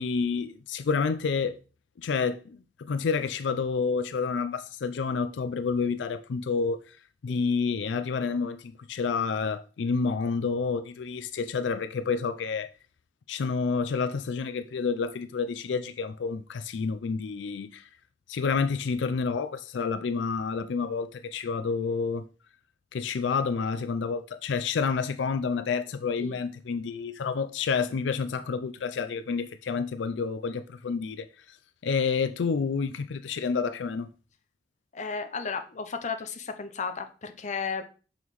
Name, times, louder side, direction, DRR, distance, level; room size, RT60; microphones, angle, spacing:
voice 1, 0.0-1.6 2.0-2.6 2.9-6.8 7.2-12.7 13.3-17.8 18.3-22.3 22.9-31.3 31.8-34.1, left 5 dB, 85° left, 0.4 m, -29 dB
voice 2, 34.9-37.8, left 5 dB, 40° left, 0.7 m, -34 dB
6.2 x 5.4 x 3.1 m
head